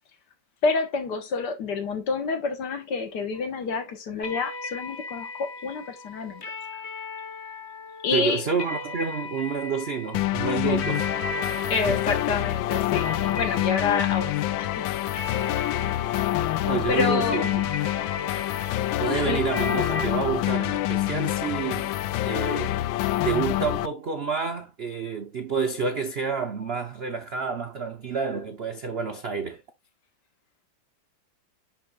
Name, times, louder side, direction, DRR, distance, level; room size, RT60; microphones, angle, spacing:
voice 1, 0.6-6.4 8.0-8.4 10.6-10.8 11.7-14.3 14.6-14.9 16.6-17.6 18.4-18.8 19.3-19.4, left 4 dB, 60° left, 1.9 m, -28 dB
sound 1, 4.2-20.1, left 2 dB, 40° left, 1.2 m, -37 dB
voice 2, 8.1-11.0 11.9-12.0 16.6-17.5 19.0-21.9 22.2-22.8 23.2-29.6, right 5 dB, 80° right, 0.5 m, -29 dB
sound 2, 10.1-23.9, left 14 dB, 80° left, 1.3 m, -26 dB
10.5 x 4.5 x 2.4 m
omnidirectional pair, 2.2 m